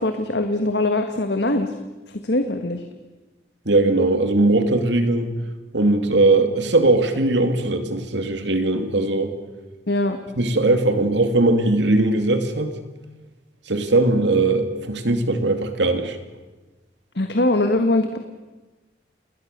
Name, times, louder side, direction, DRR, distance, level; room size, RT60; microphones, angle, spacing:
voice 1, 0.0-1.7 2.1-2.8 9.9-10.2 17.1-18.2, left 2 dB, 65° left, 7 dB, 1.6 m, -22 dB
voice 2, 3.7-5.3 5.7-9.3 10.4-12.7 13.7-16.2, right 2 dB, 75° right, 8 dB, 2.6 m, -19 dB
29.5 x 20.5 x 6.7 m, 1.2 s
head